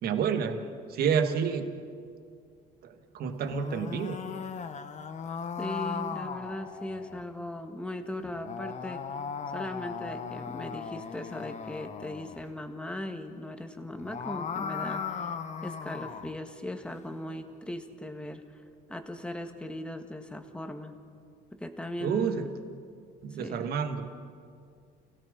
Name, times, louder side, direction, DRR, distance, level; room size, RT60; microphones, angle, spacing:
voice 1, 0.0-1.7 2.8-4.2 22.0-22.5 23.2-24.1, right 7 dB, 65° right, 7 dB, 1.6 m, -29 dB
sound 1, 3.4-7.2 8.2-12.4 13.9-16.4, left 6 dB, 45° left, 1.2 m, -37 dB
voice 2, 5.6-9.0 9.5-15.3 15.6-18.5 18.9-21.0 21.5-22.5 23.4-23.7, left 1 dB, 5° left, 6 dB, 1.6 m, -38 dB
29.5 x 17.0 x 5.2 m, 2.2 s
cardioid pair, 110°, 17 cm